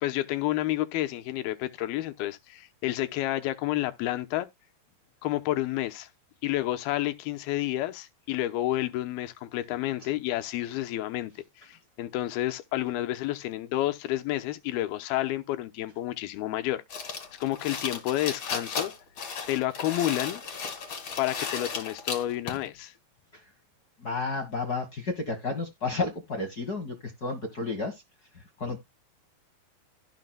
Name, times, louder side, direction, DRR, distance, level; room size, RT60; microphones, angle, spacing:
voice 1, 0.0-4.5 5.2-6.1 6.4-16.8 17.4-18.9 19.5-20.4 21.2-22.9, left 15 dB, 85° left, 2.7 m, -30 dB
sound 1, 16.9-22.7, left 5 dB, 40° left, 2.3 m, -35 dB
voice 2, 24.0-28.0 28.3-28.8, left 3 dB, 65° left, 0.9 m, -32 dB
16.5 x 5.7 x 2.2 m
omnidirectional pair, 4.3 m